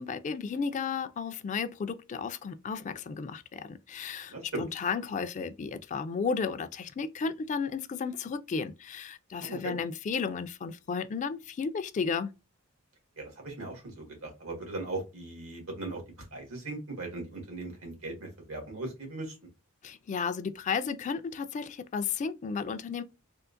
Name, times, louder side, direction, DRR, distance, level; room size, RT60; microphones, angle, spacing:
voice 1, 0.0-12.3 19.8-23.0, left 5 dB, 35° left, 0.3 m, -33 dB
voice 2, 4.3-4.6 9.4-9.8 13.2-16.0 16.3-19.4, right 2 dB, 85° right, 1.8 m, -38 dB
3.6 x 2.5 x 2.5 m
head